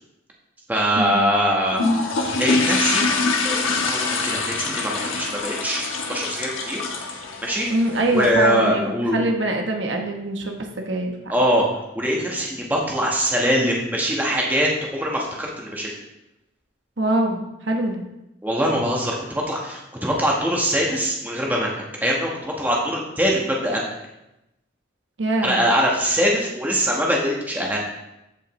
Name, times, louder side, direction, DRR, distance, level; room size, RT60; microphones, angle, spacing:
voice 1, 0.7-1.8 2.4-3.1 3.4-6.8 7.4-7.7 8.1-9.3 11.3-11.6 11.9-15.9 18.4-24.0 25.4-27.8, equal, 10° right, -3 dB, 1.3 m, -23 dB
sound 1, 1.7-8.3, left 3 dB, 90° left, 1.2 m, -24 dB
voice 2, 7.7-11.1 17.0-18.0 25.2-25.6, right 1 dB, 65° right, 2 dB, 1.1 m, -23 dB
14.0 x 5.5 x 3.2 m, 0.90 s
head